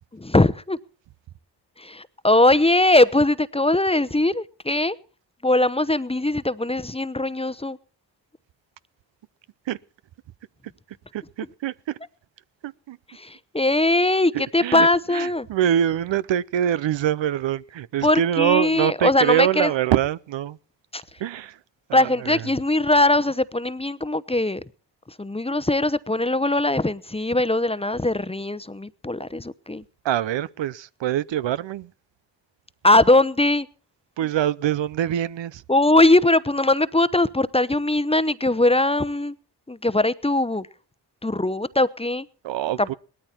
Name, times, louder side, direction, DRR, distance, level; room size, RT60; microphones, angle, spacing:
voice 1, 0.2-0.8 1.8-4.9 5.4-7.8 13.2-15.5 18.0-19.7 20.9-21.0 21.9-24.6 25.2-29.8 32.8-33.7 35.7-39.4 39.7-40.7 41.2-42.3 42.8-42.9, left 2 dB, 15° left, 0.8 m, -20 dB
voice 2, 11.1-12.0 12.6-13.0 14.3-20.6 21.2-21.6 21.9-22.5 30.0-31.9 34.2-35.6 42.4-42.9, right 11 dB, 80° right, 0.7 m, -24 dB
18.0 x 13.0 x 4.4 m
cardioid pair, 50°, 44 cm